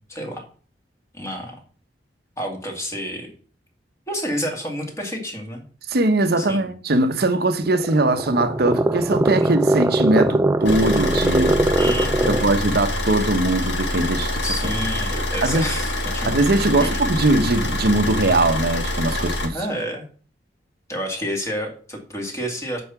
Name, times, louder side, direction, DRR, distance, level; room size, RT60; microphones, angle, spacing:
voice 1, 0.1-0.4 1.1-1.6 2.4-3.3 4.1-5.6 6.4-6.7 9.4-9.5 11.8-12.5 14.4-16.3 16.8-17.0 19.5-20.1 20.9-22.8, equal, 15° left, 2.3 m, -29 dB
voice 2, 5.9-11.6 12.3-14.4 15.4-15.7 16.3-19.6, right 2 dB, 60° right, 1.0 m, -20 dB
sound 1, 7.6-12.6, right 2 dB, 15° right, 0.3 m, -21 dB
Car / Idling, 10.6-19.5, left 1 dB, 75° left, 2.3 m, -25 dB
8.2 x 4.3 x 7.0 m
head